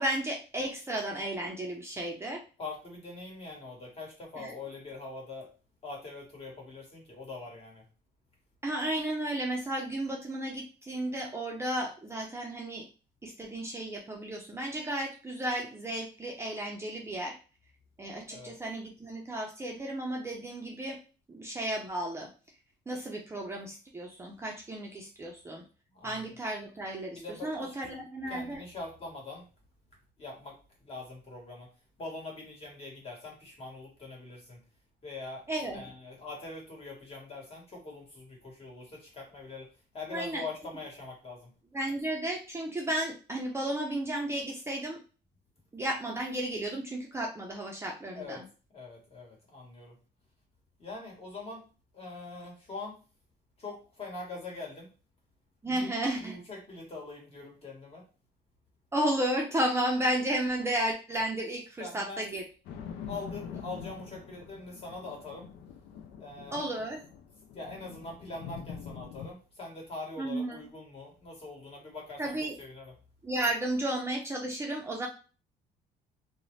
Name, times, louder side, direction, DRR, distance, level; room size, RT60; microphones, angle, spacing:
voice 1, 0.0-2.4 4.4-4.5 8.6-12.9 13.2-17.3 18.0-21.0 21.3-22.3 22.9-25.6 26.0-28.6 35.5-35.9 40.1-40.4 41.7-45.0 45.7-48.4 55.6-56.4 58.9-62.4 66.5-67.0 70.2-70.6 72.2-72.5 73.2-75.1, right 1 dB, 15° right, 0 dB, 0.5 m, -33 dB
voice 2, 2.6-5.5 5.8-7.8 18.3-18.6 25.9-26.2 27.1-27.7 28.3-29.4 30.2-30.6 30.8-31.7 32.0-34.6 35.0-35.5 35.7-39.7 39.9-41.5 48.1-48.4 48.7-49.9 50.8-51.6 51.9-53.0 53.6-54.9 55.6-55.9 56.2-58.0 61.8-62.3 63.1-65.5 66.2-66.6 67.5-72.9, left 3 dB, 35° left, -1 dB, 1.2 m, -43 dB
sound 1, 62.6-69.3, left 7 dB, 80° left, 0.4 m, -44 dB
2.5 x 2.0 x 3.1 m, 0.34 s
cardioid pair, 110°, 17 cm